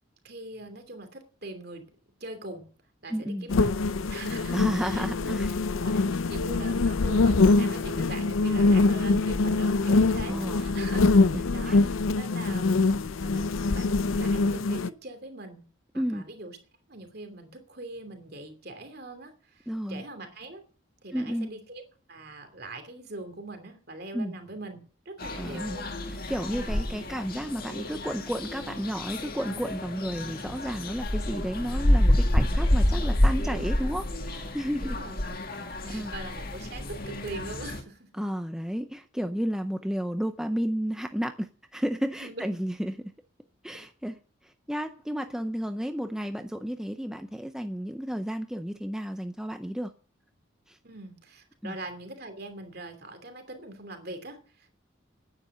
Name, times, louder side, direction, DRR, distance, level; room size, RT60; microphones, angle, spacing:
voice 1, 0.2-1.9 2.2-2.7 3.0-3.8 4.1-5.4 5.8-12.9 13.2-15.6 15.9-16.6 16.9-20.6 21.0-21.8 22.1-24.8 25.0-25.9 34.8-35.2 35.6-38.1 42.2-42.5 50.8-54.8, right 2 dB, 50° right, 2.8 m, -42 dB
voice 2, 3.1-3.5 4.5-5.6 5.9-6.0 10.3-10.7 11.3-11.8 15.9-16.3 19.7-20.0 21.1-21.5 24.1-24.3 25.3-25.8 26.1-35.0 35.9-36.1 38.1-43.1 43.6-44.2 44.4-49.9 50.7-50.8 51.6-51.8, equal, 5° right, 0.5 m, -32 dB
sound 1, 3.5-14.9, left 3 dB, 80° left, 0.6 m, -24 dB
sound 2, 25.2-37.8, left 1 dB, 45° left, 1.8 m, -28 dB
10.0 x 9.9 x 7.8 m
head